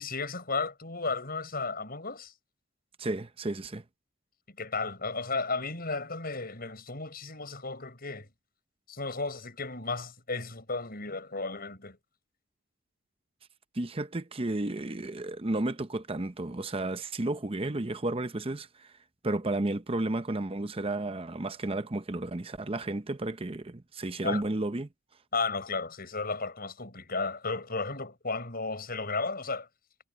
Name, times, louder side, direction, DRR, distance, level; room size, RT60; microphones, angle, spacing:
voice 1, 0.0-2.3 4.5-8.3 8.9-12.0 24.2-24.4 25.3-29.7, left 3 dB, 45° left, 7.3 m, -34 dB
voice 2, 3.0-3.8 13.7-18.7 19.2-24.9, right 2 dB, 25° right, 0.7 m, -32 dB
head